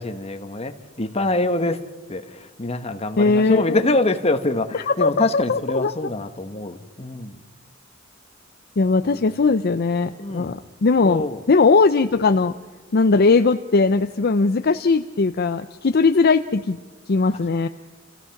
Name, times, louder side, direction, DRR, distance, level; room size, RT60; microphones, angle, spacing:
voice 1, 0.0-1.8 2.1-7.4 9.0-9.2 10.2-10.6 11.0-11.4, left 2 dB, 30° left, 8 dB, 1.2 m, -25 dB
voice 2, 3.2-4.0 4.7-5.9 8.8-12.5 12.9-16.8 17.1-17.7, left 4 dB, 50° left, 9 dB, 0.5 m, -19 dB
29.0 x 15.5 x 5.9 m, 1.3 s
head